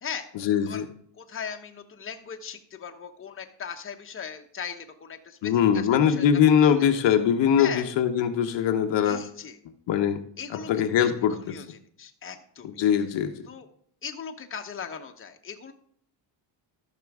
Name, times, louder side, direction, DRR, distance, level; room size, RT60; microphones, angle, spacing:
voice 1, 0.3-0.9 5.4-9.2 9.9-10.2 10.5-11.6 12.6-13.3, left 8 dB, 70° left, 7 dB, 1.0 m, -22 dB
voice 2, 1.2-6.3 6.6-6.9 7.6-7.9 9.0-9.6 10.4-11.1 11.4-12.7 13.5-13.7 14.0-15.7, left 7 dB, 30° left, 5 dB, 1.0 m, -39 dB
14.0 x 6.0 x 3.6 m, 0.62 s
cardioid pair, 110°, 46 cm